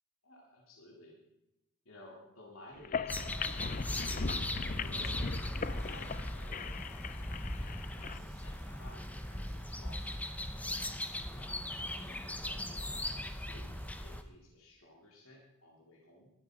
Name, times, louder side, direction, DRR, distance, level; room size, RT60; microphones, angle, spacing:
voice 1, 0.2-1.2 1.9-6.2 6.8-7.0 7.2-10.1 11.3-16.3, left 1 dB, 70° left, -2 dB, 3.7 m, -56 dB
sound 1, 2.8-8.2, left 6 dB, 35° left, 0.4 m, -40 dB
sound 2, 3.1-14.2, left 1 dB, 5° left, 0.7 m, -38 dB
sound 3, 3.4-14.2, right 2 dB, 30° right, 5.6 m, -58 dB
19.0 x 12.5 x 5.2 m, 0.91 s
head